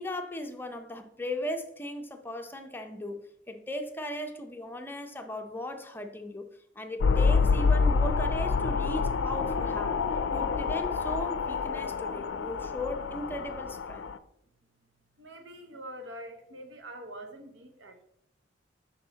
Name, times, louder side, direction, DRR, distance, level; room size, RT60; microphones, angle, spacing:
voice 1, 0.0-3.2 3.5-6.4 6.8-10.0 10.3-14.1, left 1 dB, 10° left, 5 dB, 0.6 m, -37 dB
sound 1, 7.0-14.2, left 4 dB, 80° left, 0.4 m, -27 dB
voice 2, 15.2-18.0, right 1 dB, 80° right, 6 dB, 1.0 m, -44 dB
5.9 x 5.7 x 3.9 m, 0.76 s
head